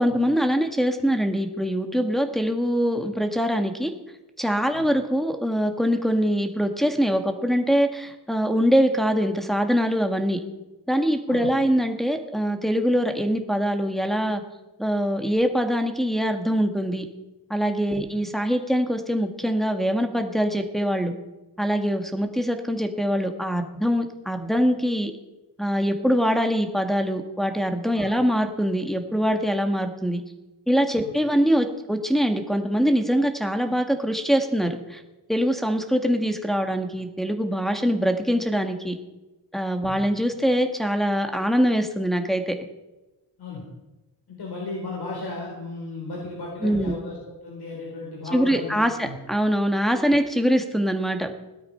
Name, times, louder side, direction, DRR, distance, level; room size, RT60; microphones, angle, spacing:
voice 1, 0.0-3.9 4.4-10.4 10.9-14.4 14.8-17.0 17.5-21.1 21.6-25.1 25.6-30.2 30.7-35.0 35.3-39.0 39.5-42.5 46.6-46.9 48.3-51.3, equal, ahead, 4 dB, 1.8 m, -23 dB
voice 2, 44.3-49.2, left 3 dB, 65° left, -2 dB, 4.7 m, -35 dB
18.0 x 12.0 x 5.7 m, 1.0 s
wide cardioid pair, 125°, 41 cm